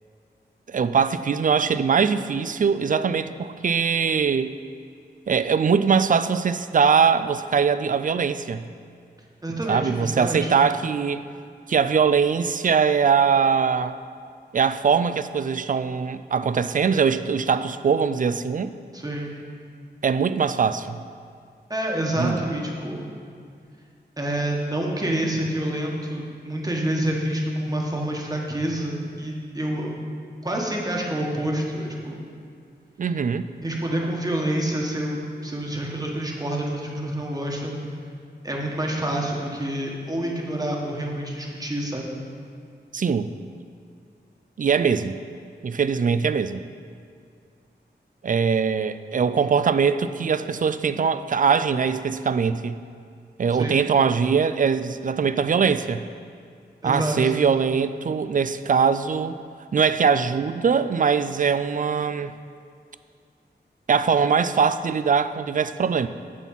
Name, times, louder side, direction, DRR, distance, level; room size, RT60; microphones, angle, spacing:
voice 1, 0.7-4.5 5.3-8.6 9.7-11.3 11.7-14.0 14.5-18.7 20.0-21.0 22.2-22.4 33.0-33.5 42.9-43.3 44.6-45.2 45.6-46.6 48.2-52.8 53.4-56.0 56.8-59.4 59.7-62.3 63.9-66.1, right 6 dB, 50° right, 13 dB, 0.4 m, -22 dB
voice 2, 9.4-10.5 18.9-19.3 21.7-23.1 24.2-30.0 30.4-32.2 33.6-37.8 38.4-42.0 53.5-53.8 56.8-57.3, right 1 dB, 20° right, -1 dB, 1.4 m, -27 dB
11.0 x 4.1 x 7.4 m, 2.2 s
wide cardioid pair, 90°, 18 cm